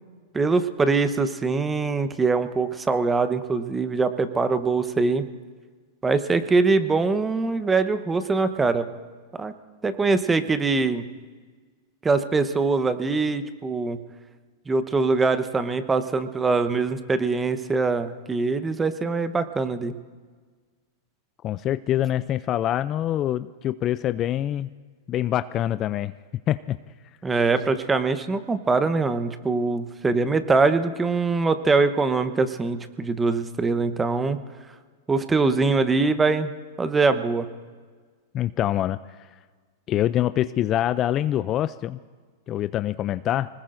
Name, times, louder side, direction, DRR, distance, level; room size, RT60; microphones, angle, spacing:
voice 1, 0.3-5.3 6.0-8.9 9.4-9.5 9.8-11.0 12.0-14.0 14.7-19.9 27.2-34.4 35.1-36.5 36.8-37.5, right 4 dB, 15° right, 10 dB, 0.9 m, -23 dB
voice 2, 21.4-24.7 25.1-26.1 26.5-26.8 38.3-39.0 39.9-42.0 42.5-43.5, left 12 dB, 35° left, 14 dB, 0.4 m, -25 dB
25.0 x 20.0 x 2.6 m, 1.5 s
hypercardioid pair, 115°, 0 cm